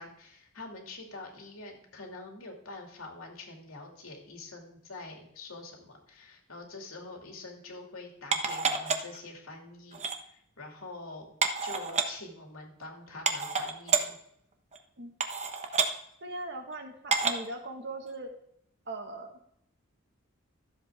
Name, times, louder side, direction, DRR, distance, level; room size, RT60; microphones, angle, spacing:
voice 1, 0.0-11.3 11.6-14.2, left 2 dB, 80° left, 1 dB, 2.6 m, -45 dB
sound 1, 8.3-9.2 9.9-10.2 11.4-12.1 12.8-12.9 13.3-14.0 14.7-14.8 15.2-15.9 17.1-17.5 18.1-18.2, right 5 dB, 35° right, 1.0 m, -28 dB
voice 2, 16.2-18.3 18.9-19.4, right 2 dB, 55° right, 4 dB, 1.7 m, -40 dB
13.5 x 7.7 x 3.6 m, 0.72 s
head